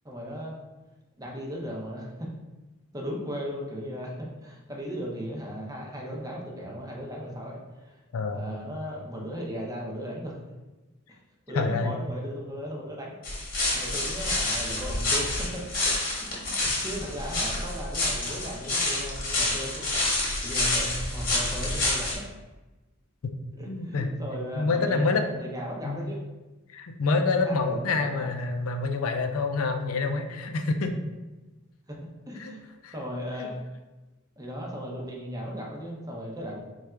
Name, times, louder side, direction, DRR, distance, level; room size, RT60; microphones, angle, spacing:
voice 1, 0.0-0.6 1.2-2.3 2.9-8.0 8.3-10.4 11.1-11.2 11.5-13.1 13.7-16.0 16.2-22.2 23.6-26.2 27.4-28.3 31.9-32.6 32.9-33.6 34.4-36.6, equal, 15° right, -2 dB, 0.7 m, -37 dB
voice 2, 8.1-8.4 11.5-11.9 23.7-24.1 24.6-25.2 25.8-26.0 26.7-30.9 32.4-32.5 32.8-32.9 33.4-33.5, left 3 dB, 85° left, 6 dB, 0.4 m, -27 dB
sound 1, 13.2-22.2, left 2 dB, 45° left, 1.1 m, -28 dB
3.4 x 2.4 x 4.3 m, 1.1 s
head